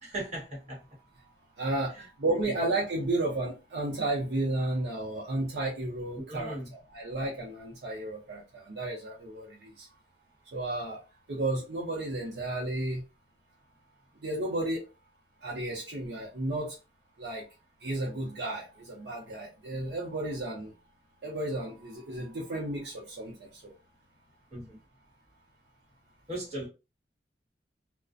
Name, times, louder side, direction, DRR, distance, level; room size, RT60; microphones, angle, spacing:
voice 1, 0.0-0.8 2.4-2.5 6.2-6.7 24.5-24.8 26.3-26.7, right 1 dB, 40° right, 1.2 m, -38 dB
voice 2, 1.6-9.9 10.5-11.0 11.3-13.0 14.2-14.9 15.4-16.7 17.2-17.4 17.8-20.7 21.2-23.7, right 2 dB, 70° right, 0.6 m, -33 dB
2.4 x 2.1 x 2.5 m
head